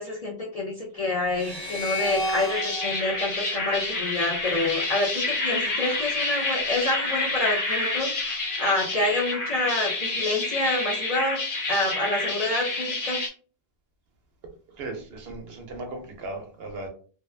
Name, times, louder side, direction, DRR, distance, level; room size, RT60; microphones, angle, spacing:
voice 1, 0.0-11.4 11.7-13.2, left 2 dB, 50° left, -1 dB, 0.4 m, -28 dB
sound 1, 1.3-4.6, equal, 40° right, 0.9 m, -33 dB
sound 2, 2.2-13.3, left 3 dB, 75° left, 1.1 m, -28 dB
voice 2, 14.7-16.9, right 2 dB, 75° right, 4 dB, 0.9 m, -37 dB
2.6 x 2.2 x 2.3 m, 0.41 s
omnidirectional pair, 1.1 m